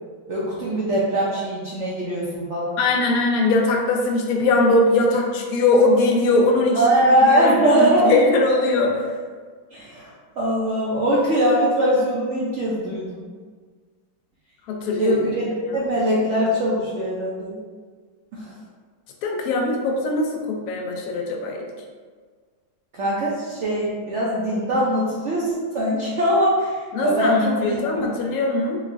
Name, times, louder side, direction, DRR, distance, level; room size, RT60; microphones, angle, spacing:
voice 1, 0.3-2.7 6.7-8.1 9.7-13.2 15.0-17.6 18.3-18.5 22.9-26.8 27.0-27.8, equal, 80° right, -7 dB, 0.6 m, -21 dB
voice 2, 2.8-6.8 7.1-9.0 14.7-15.2 19.2-21.6 26.9-28.8, left 2 dB, 75° left, 1 dB, 0.8 m, -20 dB
3.7 x 3.1 x 2.5 m, 1.5 s
omnidirectional pair, 2.0 m